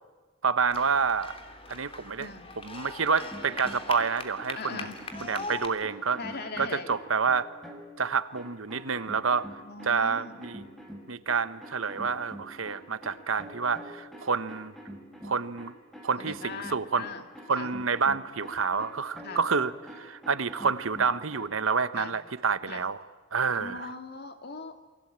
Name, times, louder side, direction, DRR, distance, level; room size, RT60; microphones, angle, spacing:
voice 1, 0.4-1.3 1.7-2.3 2.6-4.9 5.2-6.2 6.6-7.5 8.0-9.6 9.8-10.7 11.1-14.7 15.2-15.7 16.0-17.0 17.5-23.0 23.3-23.9, right 5 dB, 85° right, 13 dB, 1.1 m, -28 dB
sound 1, 0.7-5.7, left 3 dB, 30° left, 3.1 m, -41 dB
sound 2, 3.2-8.0 8.3-21.5, equal, ahead, 5.1 m, -46 dB
voice 2, 4.5-5.0 6.2-6.9 9.6-10.4 16.2-17.3 17.5-17.7 19.2-19.4 21.9-22.1 22.7-22.8 23.5-24.8, left 4 dB, 55° left, 6 dB, 2.5 m, -40 dB
29.0 x 23.5 x 8.9 m, 1.3 s
head